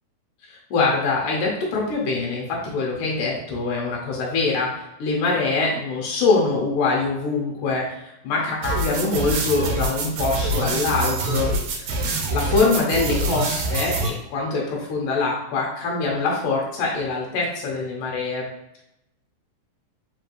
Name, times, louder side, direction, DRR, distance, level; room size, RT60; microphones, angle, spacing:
voice 1, 0.5-4.7 5.0-18.5, left 3 dB, 80° left, -3 dB, 2.4 m, -24 dB
sound 1, 8.6-14.1, right 2 dB, 75° right, 1.8 m, -25 dB
5.2 x 3.2 x 2.6 m, 0.83 s
omnidirectional pair, 3.6 m